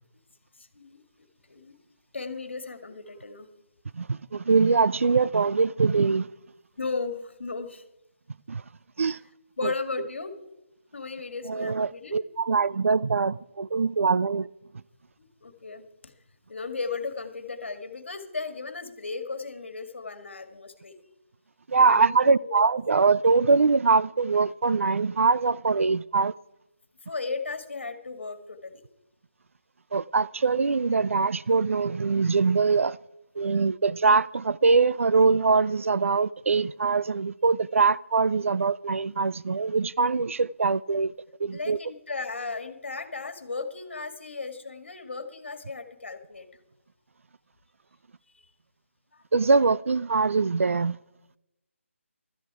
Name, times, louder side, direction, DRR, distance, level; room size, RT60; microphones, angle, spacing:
voice 1, 0.6-1.8 2.1-3.5 6.8-7.9 9.6-10.3 10.9-12.1 15.2-16.1 16.5-21.0 21.8-22.6 27.0-28.8 41.5-46.5 48.3-48.5 49.1-49.2, left 4 dB, 55° left, 2.0 m, -36 dB
voice 2, 3.9-6.3 8.5-8.6 9.0-9.2 9.6-9.7 11.5-14.5 21.7-26.3 29.9-33.0 33.4-41.1 41.4-41.8 49.3-51.0, right 4 dB, 70° right, 0.4 m, -23 dB
16.0 x 13.0 x 4.8 m
hypercardioid pair, 180°, 7 cm